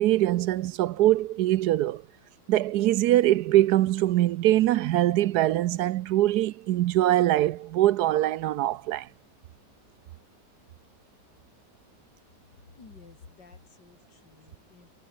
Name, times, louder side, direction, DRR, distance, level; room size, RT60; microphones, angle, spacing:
voice 1, 0.0-2.0 2.5-9.1, right 14 dB, 75° right, 1.1 m, -23 dB
voice 2, 12.5-14.9, left 4 dB, 85° left, 4.0 m, -52 dB
omnidirectional pair, 1.8 m